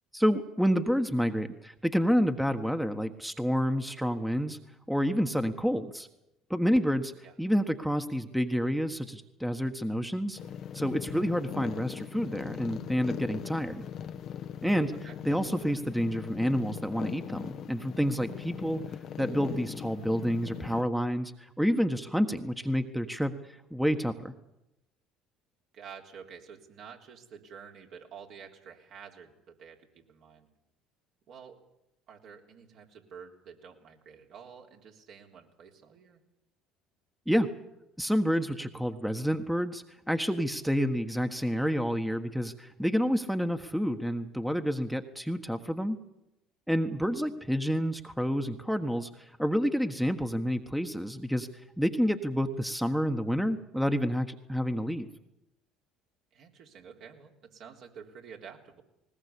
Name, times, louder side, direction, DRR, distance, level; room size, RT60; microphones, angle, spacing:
voice 1, 0.1-4.6 4.9-6.1 6.5-7.1 7.4-10.4 10.7-13.8 14.6-14.9 15.2-18.8 19.2-24.3 37.3-37.5 38.0-46.0 46.7-51.5 51.8-55.1, equal, ahead, 7 dB, 1.5 m, -29 dB
sound 1, 10.4-20.8, left 9 dB, 55° left, 1.1 m, -40 dB
voice 2, 25.7-30.5 31.3-31.6 32.1-36.2 47.0-47.2 56.3-58.8, right 7 dB, 60° right, 1 dB, 3.6 m, -49 dB
20.0 x 19.5 x 8.5 m, 0.89 s
hypercardioid pair, 60°, 0 cm